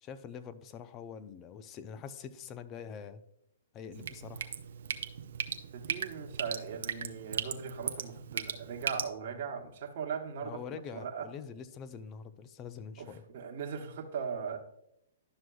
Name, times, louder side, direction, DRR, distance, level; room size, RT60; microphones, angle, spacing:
voice 1, 0.0-3.2 3.7-4.5 10.4-13.2, left 7 dB, 25° left, 12 dB, 0.5 m, -45 dB
Drip, 3.9-9.1, right 8 dB, 70° right, 0.6 m, -38 dB
voice 2, 5.7-11.3 13.0-14.6, right 6 dB, 50° right, 2 dB, 1.1 m, -39 dB
11.5 x 6.2 x 2.3 m, 0.79 s
hypercardioid pair, 140°, 0 cm